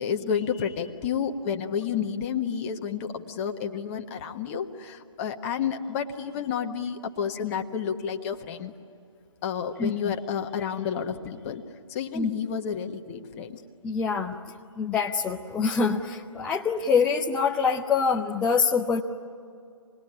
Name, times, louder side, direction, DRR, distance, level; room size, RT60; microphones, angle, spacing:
voice 1, 0.0-8.7 9.4-11.6 11.9-13.6, left 7 dB, 25° left, 4 dB, 1.4 m, -30 dB
voice 2, 13.8-14.3 14.8-19.0, left 5 dB, 5° left, -2 dB, 0.6 m, -25 dB
27.5 x 21.0 x 9.9 m, 2.4 s
figure-of-eight pair, 150°, 16 cm